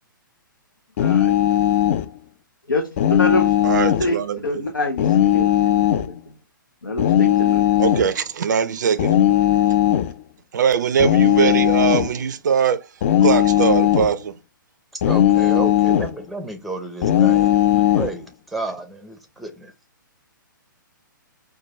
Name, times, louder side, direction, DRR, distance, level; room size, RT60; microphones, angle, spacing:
voice 1, 1.0-1.4 2.7-2.8 3.1-3.5 4.0-4.1 4.4-6.2 6.8-7.6, left 2 dB, 80° left, 0.7 m, -25 dB
sound 1, 1.0-2.1 3.0-4.1 5.0-6.1 7.0-8.1 9.0-10.1 11.0-12.1 13.0-14.1 15.0-16.1 17.0-18.1, left 12 dB, 40° left, 0.4 m, -17 dB
voice 2, 3.6-4.7 7.8-9.1 10.5-12.9 13.2-14.3 15.5-16.0, right 7 dB, 60° right, 0.4 m, -21 dB
voice 3, 14.9-17.5 17.9-19.7, right 2 dB, ahead, 0.6 m, -31 dB
4.5 x 2.2 x 3.2 m
figure-of-eight pair, 120°, 11 cm